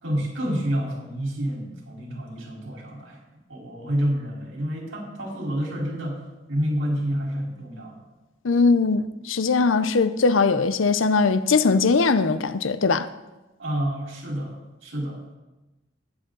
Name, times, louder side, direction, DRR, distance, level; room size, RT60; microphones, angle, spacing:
voice 1, 0.0-3.2 3.5-8.0 13.6-15.4, equal, 85° right, 4.1 m, -29 dB
voice 2, 8.4-13.1, left 4 dB, 85° left, 0.6 m, -20 dB
19.5 x 7.9 x 3.9 m
head